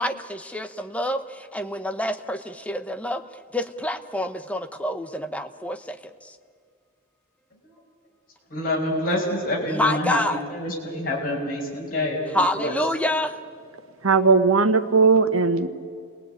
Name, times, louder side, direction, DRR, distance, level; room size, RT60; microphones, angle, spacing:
voice 1, 0.0-3.2 3.5-6.4 9.6-10.4 12.3-13.4, left 1 dB, 5° left, 8 dB, 1.0 m, -27 dB
voice 2, 8.5-12.8, left 1 dB, 45° left, -2 dB, 5.6 m, -27 dB
voice 3, 14.0-15.7, right 4 dB, 85° right, 9 dB, 1.3 m, -18 dB
28.5 x 19.5 x 9.2 m, 2.1 s
head